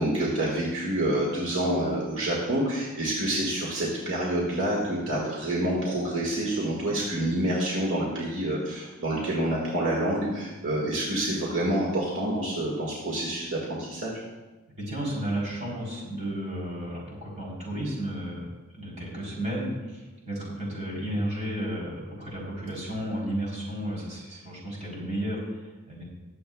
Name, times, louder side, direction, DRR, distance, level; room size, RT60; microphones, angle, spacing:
voice 1, 0.0-14.1 19.0-19.2, right 1 dB, 65° right, -4 dB, 1.8 m, -27 dB
voice 2, 14.8-18.5 18.7-26.0, right 1 dB, 35° right, -4 dB, 3.6 m, -33 dB
20.5 x 7.7 x 2.3 m, 1.2 s
head